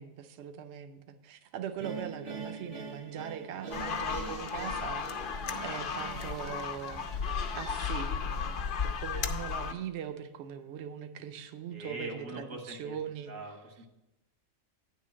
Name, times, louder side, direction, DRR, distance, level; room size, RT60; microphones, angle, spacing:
voice 1, 0.0-5.1 5.6-13.3, right 8 dB, 65° right, 8 dB, 0.9 m, -41 dB
sound 1, 1.8-8.9, right 5 dB, 35° right, 0.6 m, -45 dB
sound 2, 3.7-9.7, left 6 dB, 55° left, 0.6 m, -34 dB
voice 2, 11.7-13.0 13.3-13.9, right 2 dB, 85° right, 2 dB, 1.8 m, -42 dB
9.6 x 3.8 x 7.2 m, 0.91 s
omnidirectional pair, 1.3 m